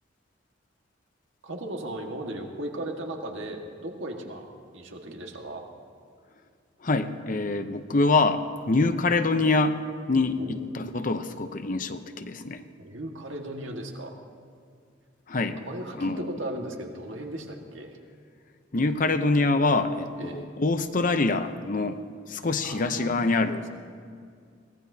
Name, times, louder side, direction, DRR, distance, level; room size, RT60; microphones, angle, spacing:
voice 1, 1.4-5.7 10.3-10.6 12.8-14.1 15.6-18.0 20.2-20.5 22.6-23.7, right 1 dB, 85° right, 2 dB, 1.7 m, -37 dB
voice 2, 6.8-9.8 10.1-12.6 15.3-15.6 16.0-16.3 18.7-22.0 22.3-23.7, left 3 dB, 45° left, 9 dB, 0.7 m, -25 dB
22.5 x 18.0 x 2.8 m, 2.2 s
head